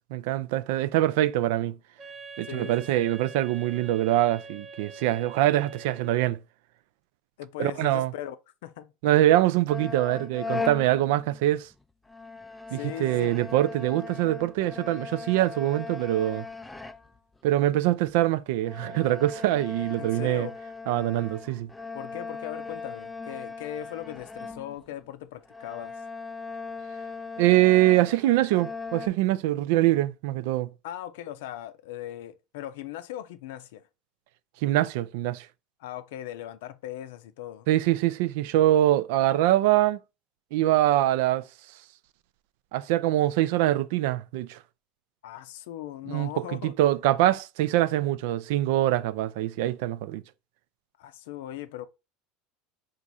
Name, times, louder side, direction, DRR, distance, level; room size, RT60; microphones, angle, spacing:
voice 1, 0.1-1.8 2.4-6.4 7.6-8.1 9.0-11.7 12.7-16.4 17.4-20.5 20.9-21.7 27.4-30.7 34.6-35.5 37.7-40.0 40.5-41.4 42.7-44.6 46.1-50.2, right 14 dB, 75° right, 0.4 m, -24 dB
Wind instrument woodwind instrument, 2.0-6.4, right 4 dB, 20° right, 0.7 m, -45 dB
voice 2, 2.4-2.8 7.4-8.4 8.6-8.9 9.3-9.4 12.7-13.3 20.0-20.6 21.9-26.1 30.8-33.8 35.8-37.7 45.2-46.7 51.0-51.9, left 12 dB, 85° left, 0.5 m, -39 dB
sound 1, 9.7-11.7 12.1-17.4 18.1-18.2 18.6-25.1 25.5-29.1, left 4 dB, 5° left, 0.3 m, -39 dB
4.7 x 2.5 x 4.1 m
supercardioid pair, 125°, 0 cm